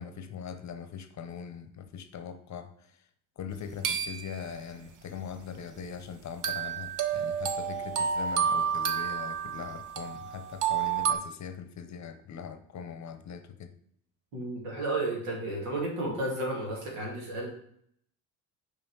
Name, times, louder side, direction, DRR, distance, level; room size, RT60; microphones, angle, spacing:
voice 1, 0.0-3.1 3.4-13.7, left 7 dB, 40° left, 0.8 m, -41 dB
sound 1, 3.8-4.5 6.4-11.1, right 7 dB, 45° right, 0.9 m, -30 dB
voice 2, 14.3-17.5, right 2 dB, 75° right, 2.5 m, -32 dB
5.6 x 4.8 x 4.7 m
hypercardioid pair, 70°, 44 cm